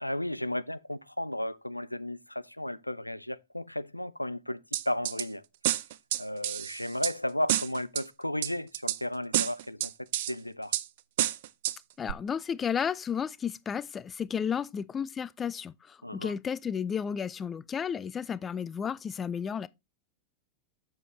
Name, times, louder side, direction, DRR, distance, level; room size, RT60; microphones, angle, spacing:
voice 1, 0.0-4.6 4.9-5.4 6.2-10.7 16.0-16.3, left 1 dB, 85° left, 0.4 m, -34 dB
sound 1, 4.7-5.2 5.6-7.1 7.5-8.0 8.4-9.0 9.3-10.3 10.7-10.8 11.2-11.8 12.1-12.2, right 14 dB, 55° right, 0.5 m, -29 dB
voice 2, 12.0-19.7, left 7 dB, 20° left, 0.4 m, -33 dB
7.6 x 6.9 x 3.1 m
figure-of-eight pair, 90°, 0 cm